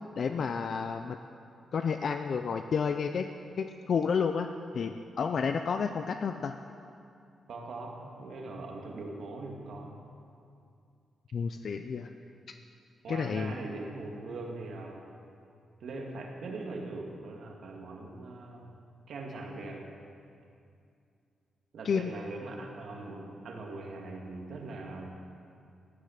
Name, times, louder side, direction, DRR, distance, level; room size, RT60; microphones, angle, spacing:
voice 1, 0.2-1.2 1.7-3.3 3.6-4.5 4.7-6.5 11.3-12.1 12.5-12.6 13.1-13.5 21.8-22.1, left 6 dB, 45° left, 7 dB, 0.5 m, -30 dB
voice 2, 7.5-10.0 13.0-15.1 15.8-19.9 21.7-25.1, right 2 dB, 60° right, 1 dB, 2.1 m, -41 dB
17.0 x 9.9 x 6.5 m, 2.5 s
wide cardioid pair, 175°, 0 cm